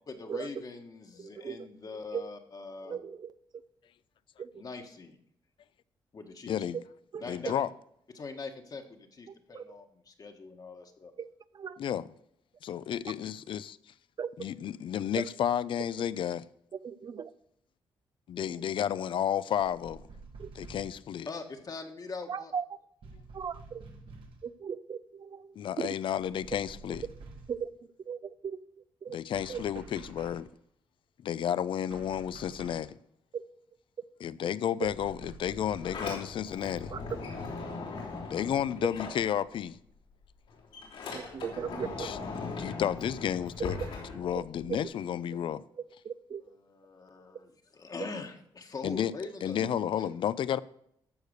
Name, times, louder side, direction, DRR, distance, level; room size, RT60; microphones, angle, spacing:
voice 1, 0.1-3.0 4.5-5.2 6.1-6.7 7.2-7.5 8.1-11.1 21.3-22.5 29.5-29.6 46.4-49.6 50.0-50.1, left 4 dB, 45° left, 1.4 m, -43 dB
voice 2, 1.2-1.7 2.1-2.2 2.9-3.3 4.4-4.5 7.1-7.2 9.5-9.7 11.2-11.3 11.5-11.8 14.2-14.3 16.8-17.3 20.4-20.5 22.3-22.6 23.3-23.8 24.4-25.5 25.8-25.9 27.5-27.7 28.1-28.6 29.0-29.2 29.5-29.6 33.3-33.4 34.8-34.9 36.9-37.0 41.1-42.1 44.4-44.5 46.0-46.4, right 7 dB, 50° right, 0.5 m, -37 dB
voice 3, 6.5-6.8 7.2-7.7 11.8-12.1 12.6-13.8 14.4-16.4 18.3-20.1 20.5-21.3 25.6-27.1 29.1-30.5 31.2-33.0 34.2-36.9 38.3-39.8 41.3-41.4 42.0-43.8 44.1-45.6 48.8-49.1 49.4-50.6, left 9 dB, 65° left, 0.5 m, -32 dB
sound 1, 19.6-21.1 23.0-24.5 26.2-27.7 29.3-30.6 31.9-32.9 34.8-36.1, right 4 dB, 70° right, 1.7 m, -49 dB
Sliding door, 35.6-39.8 40.1-44.8, left 4 dB, 85° left, 3.2 m, -40 dB
13.5 x 4.9 x 6.6 m
cardioid pair, 80°, 9 cm